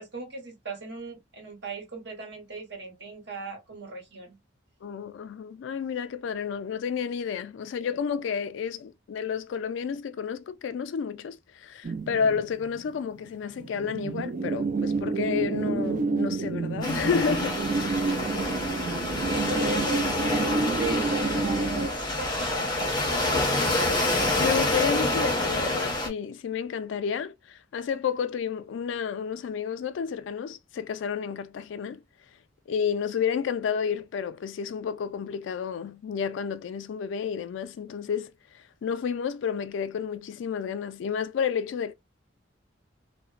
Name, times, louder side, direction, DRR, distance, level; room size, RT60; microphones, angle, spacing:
voice 1, 0.0-4.4 18.4-18.9 19.3-24.1, right 2 dB, 65° right, 1.0 m, -38 dB
voice 2, 4.8-18.2 24.4-32.0 32.7-38.3 38.8-41.9, left 7 dB, 75° left, 0.3 m, -31 dB
sound 1, 11.8-13.0 13.3-13.4 13.6-21.9, right 4 dB, 45° right, 0.3 m, -29 dB
Waves surf, 16.8-26.1, left 2 dB, 25° left, 0.8 m, -27 dB
2.8 x 2.0 x 2.3 m
head